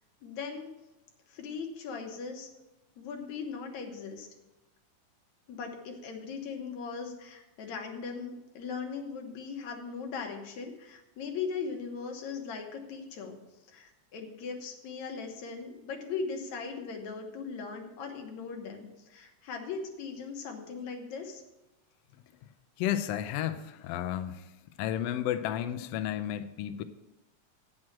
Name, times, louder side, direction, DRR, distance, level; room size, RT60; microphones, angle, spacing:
voice 1, 0.2-0.7 1.3-2.5 3.0-4.3 5.5-13.4 13.7-21.4, left 5 dB, 70° left, 2.5 m, -39 dB
voice 2, 22.8-24.4 24.8-26.8, left 11 dB, 90° left, 1.4 m, -32 dB
8.7 x 6.2 x 7.3 m
omnidirectional pair, 3.5 m